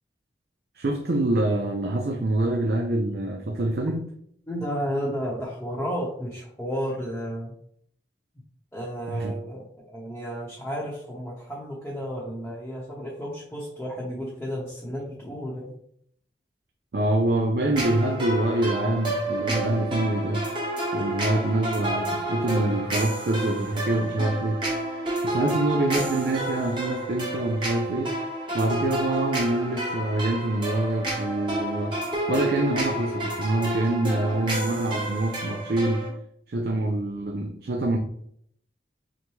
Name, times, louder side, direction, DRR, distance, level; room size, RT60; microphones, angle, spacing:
voice 1, 0.8-4.1 9.1-9.3 16.9-20.5 20.9-24.6 25.2-28.1 28.5-32.0 32.3-36.1 36.5-38.0, right 1 dB, 55° right, 0.5 m, -25 dB
voice 2, 4.5-7.5 8.7-15.7, equal, 10° left, 0.9 m, -32 dB
sound 1, 17.7-36.1, right 1 dB, 25° right, 1.2 m, -30 dB
6.2 x 2.2 x 3.1 m
head